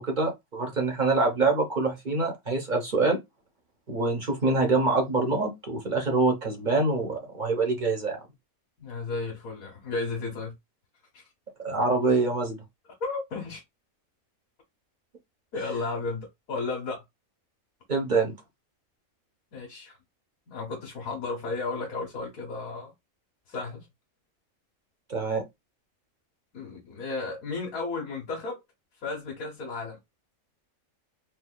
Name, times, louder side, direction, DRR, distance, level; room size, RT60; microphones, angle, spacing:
voice 1, 0.0-3.2 3.9-8.2 11.6-12.6 17.9-18.3 25.1-25.4, right 3 dB, 40° right, 0.9 m, -25 dB
voice 2, 8.8-10.5 11.1-11.3 13.0-13.6 15.5-17.0 19.5-20.0 20.5-22.9 23.5-23.9 26.5-28.6 29.0-30.0, left 3 dB, 75° left, 1.6 m, -33 dB
4.4 x 2.7 x 2.2 m
omnidirectional pair, 1.5 m